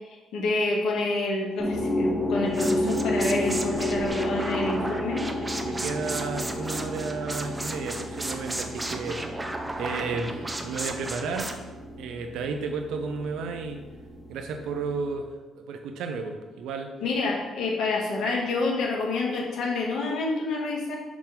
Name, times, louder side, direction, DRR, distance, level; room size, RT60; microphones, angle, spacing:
voice 1, 0.3-5.2 17.0-21.0, left 3 dB, 80° left, -1 dB, 1.6 m, -28 dB
sound 1, 1.6-15.1, left 1 dB, 15° left, 1.5 m, -32 dB
sound 2, 2.5-11.5, right 2 dB, 15° right, 0.7 m, -35 dB
voice 2, 5.6-9.3 9.8-11.6 12.0-13.8 14.3-15.3 15.6-16.9, right 4 dB, 85° right, 5 dB, 0.8 m, -32 dB
6.1 x 3.6 x 5.9 m, 1.2 s
cardioid pair, 90°, 0 cm